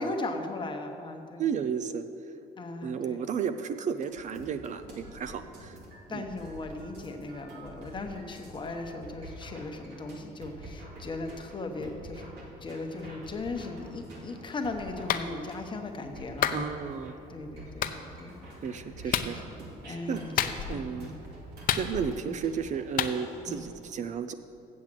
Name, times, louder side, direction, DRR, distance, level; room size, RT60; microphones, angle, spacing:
voice 1, 0.0-1.5 2.6-3.2 6.1-12.3 12.6-16.7 17.3-18.4 19.1-19.4 19.8-21.2 22.2-22.5 23.5-23.6, left 2 dB, 30° left, 4 dB, 1.0 m, -38 dB
voice 2, 1.4-2.0 2.8-5.8 6.1-6.2 16.5-17.2 18.6-19.4 19.9-20.2 20.7-21.1 21.8-24.3, right 7 dB, 45° right, 10 dB, 0.5 m, -33 dB
sound 1, 4.0-23.7, right 1 dB, 75° right, 2.3 m, -47 dB
Clapping, 15.1-15.3 16.4-16.6 17.8-18.0 19.1-19.3 20.4-20.8 21.7-22.2 23.0-23.1, left 10 dB, 55° left, 0.6 m, -28 dB
7.5 x 7.5 x 7.5 m, 2.8 s
cardioid pair, 110°, 17 cm